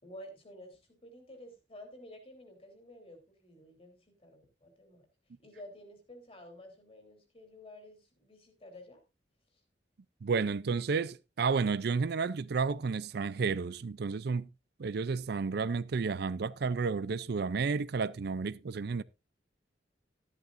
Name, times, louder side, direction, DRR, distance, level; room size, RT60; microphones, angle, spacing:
voice 1, 0.0-5.1 5.4-9.0 9.5-9.6, left 1 dB, 35° left, 3.2 m, -52 dB
voice 2, 10.2-14.5 14.8-19.0, right 5 dB, 65° right, 0.5 m, -31 dB
13.0 x 11.0 x 2.5 m
head